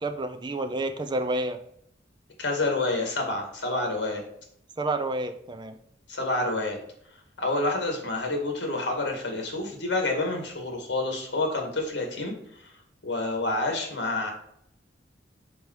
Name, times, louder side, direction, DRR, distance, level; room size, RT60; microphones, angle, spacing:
voice 1, 0.0-1.6 4.8-5.8, right 2 dB, 25° right, 7 dB, 0.6 m, -29 dB
voice 2, 2.4-4.2 6.1-6.8 7.4-12.7 13.0-14.3, left 2 dB, 75° left, 3 dB, 2.0 m, -28 dB
5.4 x 4.7 x 4.8 m, 0.72 s
head